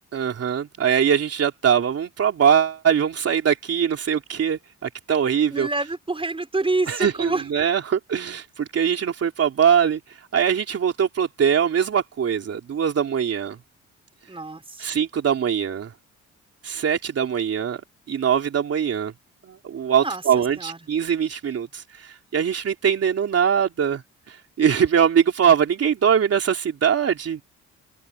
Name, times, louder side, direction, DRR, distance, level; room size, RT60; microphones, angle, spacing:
voice 1, 0.1-5.7 6.9-13.6 14.8-15.9 16.6-17.8 18.1-19.1 19.5-27.4, right 8 dB, 55° right, 3.3 m, -22 dB
voice 2, 5.5-7.4 14.3-14.8 20.0-20.2 20.6-20.8, right 2 dB, 20° right, 5.8 m, -27 dB
open air
cardioid pair, 90°, 30 cm